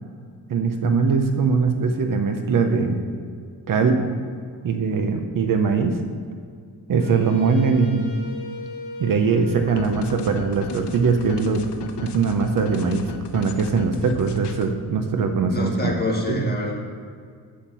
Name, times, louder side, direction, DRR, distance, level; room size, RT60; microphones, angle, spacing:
voice 1, 0.5-3.0 3.7-4.0 4.6-6.0 6.9-8.1 9.0-11.6 12.0-15.9 16.3-16.5, right 5 dB, 55° right, 6 dB, 0.8 m, -21 dB
Wind instrument woodwind instrument, 7.0-11.9, left 2 dB, 50° left, 1.2 m, -39 dB
sound 1, 9.6-14.7, left 6 dB, 85° left, 0.8 m, -35 dB
voice 2, 15.5-16.7, left 2 dB, 25° left, -2 dB, 1.6 m, -26 dB
8.7 x 7.3 x 6.1 m, 2.1 s
wide cardioid pair, 180°, 40 cm